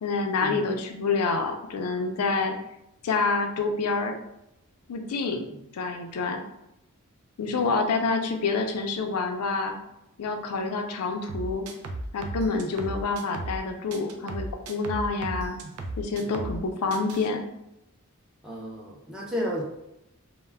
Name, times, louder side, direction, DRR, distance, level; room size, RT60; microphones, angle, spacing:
voice 1, 0.0-2.5 3.0-4.2 4.9-5.5 5.7-6.4 7.4-9.8 10.2-11.7 12.1-15.6 16.0-17.4, left 4 dB, 90° left, 4 dB, 0.4 m, -27 dB
sound 1, 11.3-13.6 13.9-16.6 16.9-17.3, right 2 dB, 75° right, 0.4 m, -35 dB
voice 2, 18.4-19.6, equal, 5° right, -4 dB, 0.5 m, -33 dB
2.2 x 2.0 x 3.3 m, 0.84 s
head